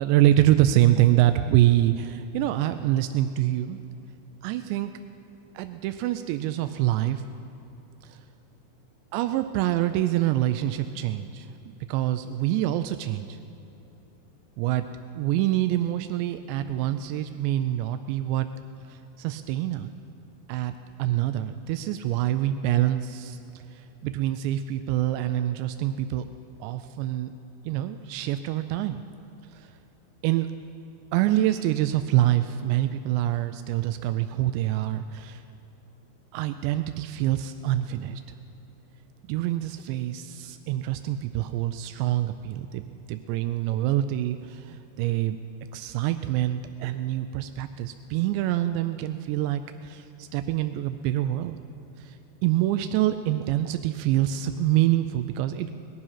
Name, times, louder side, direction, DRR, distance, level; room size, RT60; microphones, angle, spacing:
voice 1, 0.0-3.8 4.4-4.9 5.6-7.2 8.1-8.2 9.1-13.4 14.6-14.9 15.2-18.5 19.2-19.9 20.5-23.4 24.0-26.3 26.6-27.3 27.7-29.0 30.2-30.5 31.1-35.4 36.3-38.2 39.3-45.4 45.7-51.6 52.0-52.1 52.4-55.8, right 13 dB, 90° right, 9 dB, 2.5 m, -25 dB
20.0 x 12.5 x 5.7 m, 2.9 s
omnidirectional pair, 5.6 m